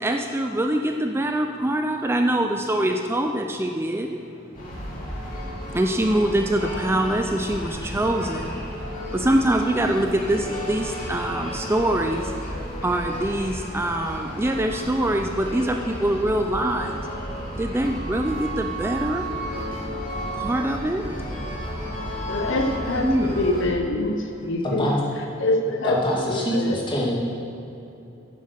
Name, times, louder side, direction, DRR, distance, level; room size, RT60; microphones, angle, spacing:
voice 1, 0.0-4.1 5.7-8.4 9.2-10.4 10.7-12.2 12.8-16.9 17.6-19.2 20.4-21.0 23.0-23.4, right 1 dB, 10° right, 4 dB, 0.4 m, -24 dB
sound 1, 4.5-23.7, equal, 45° left, 2.7 m, -33 dB
voice 2, 22.3-24.9 25.4-26.0 26.3-26.8, left 2 dB, 65° left, 3 dB, 0.9 m, -25 dB
voice 3, 25.8-27.1, left 1 dB, 25° left, -4 dB, 2.1 m, -24 dB
9.6 x 7.6 x 6.5 m, 2.8 s
head